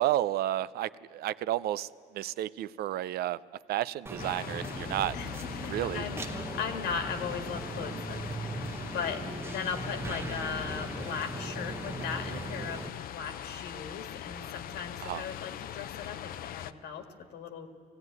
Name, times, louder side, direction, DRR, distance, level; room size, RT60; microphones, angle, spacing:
voice 1, 0.0-1.9 2.1-3.4 3.7-5.2 5.7-6.0 15.0-15.2, right 13 dB, 65° right, 18 dB, 0.5 m, -31 dB
sound 1, 4.1-12.9, right 2 dB, 15° right, 0.8 m, -39 dB
sound 2, 4.2-16.7, left 10 dB, 60° left, 0.6 m, -41 dB
voice 2, 5.1-8.6 8.9-17.0 17.3-17.7, left 6 dB, 85° left, 5 dB, 1.8 m, -38 dB
18.5 x 15.5 x 9.4 m, 2.4 s
cardioid pair, 110°, 17 cm